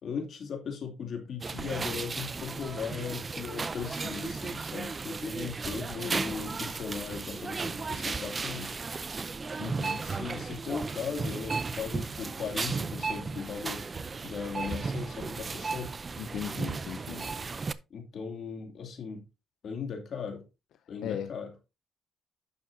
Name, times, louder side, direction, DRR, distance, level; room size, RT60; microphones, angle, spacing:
voice 1, 0.0-8.8 10.0-13.9 14.2-15.9 17.9-19.2 19.6-20.4 20.9-21.5, left 6 dB, 60° left, 2.5 m, -38 dB
sound 1, 1.4-17.7, right 4 dB, 30° right, 0.5 m, -35 dB
voice 2, 9.6-10.0 16.2-17.3 21.0-21.3, left 10 dB, 80° left, 0.5 m, -37 dB
10.5 x 6.9 x 2.6 m
cardioid pair, 90°, 0 cm